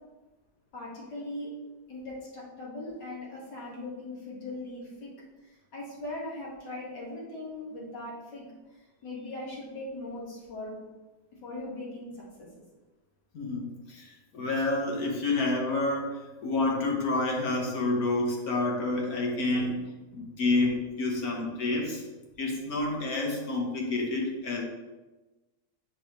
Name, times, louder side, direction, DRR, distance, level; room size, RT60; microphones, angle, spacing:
voice 1, 0.7-1.5 1.9-5.1 5.4-8.5 9.0-10.8 11.4-12.6, left 2 dB, 80° left, -5 dB, 2.5 m, -39 dB
voice 2, 13.3-19.8 20.1-22.0 22.4-24.6, left 2 dB, 60° left, -1 dB, 1.6 m, -29 dB
7.3 x 5.6 x 3.0 m, 1.2 s
omnidirectional pair, 1.8 m